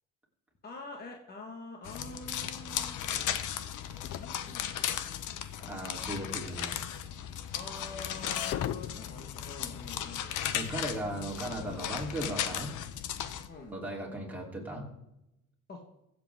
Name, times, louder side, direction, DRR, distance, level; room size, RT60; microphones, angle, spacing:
voice 1, 0.6-3.2 4.1-5.1 7.5-10.3 11.0-11.1 13.5-13.7 15.7-15.8, left 3 dB, 30° left, 1 dB, 1.5 m, -46 dB
sound 1, 1.8-13.5, left 10 dB, 65° left, 1.0 m, -36 dB
sound 2, 1.9-13.7, left 11 dB, 50° left, 0.6 m, -43 dB
voice 2, 5.7-6.8 10.5-12.7 13.7-14.9, right 1 dB, 5° right, -3 dB, 3.1 m, -37 dB
23.5 x 7.9 x 3.6 m, 0.88 s
cardioid pair, 170°, 32 cm